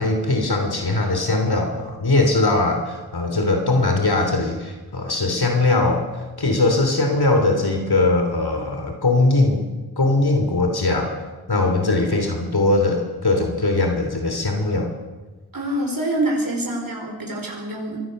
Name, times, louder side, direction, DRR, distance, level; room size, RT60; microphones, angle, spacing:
voice 1, 0.0-11.1 11.5-14.9, left 2 dB, 75° left, 3 dB, 3.2 m, -20 dB
voice 2, 15.5-18.0, right 1 dB, 60° right, 0 dB, 4.8 m, -25 dB
25.5 x 19.0 x 6.6 m, 1.3 s
wide cardioid pair, 60°, 39 cm